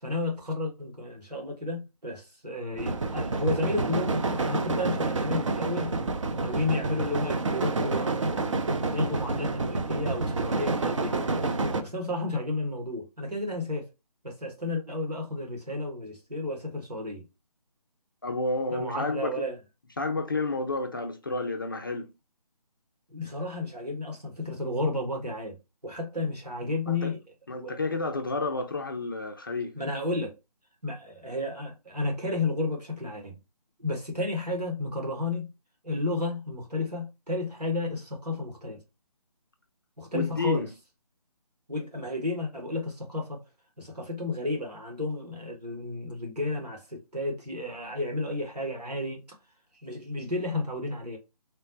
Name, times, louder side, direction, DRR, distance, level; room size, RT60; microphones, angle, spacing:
voice 1, 0.0-5.9 6.4-8.6 8.9-11.2 11.8-13.9 14.2-17.2 18.7-19.6 23.1-25.6 25.8-27.2 27.5-28.0 29.7-30.3 30.8-33.4 33.8-35.5 35.8-38.8 40.0-40.7 41.7-43.4 43.8-49.2 49.8-51.2, left 2 dB, 85° right, 1.6 m, -32 dB
sound 1, 2.8-11.8, right 3 dB, 50° right, 0.5 m, -28 dB
voice 2, 18.2-19.5 20.0-22.1 26.9-27.1 27.5-29.8 40.1-40.7, left 3 dB, 35° left, 0.3 m, -30 dB
3.3 x 2.0 x 3.9 m
figure-of-eight pair, 150°, 20 cm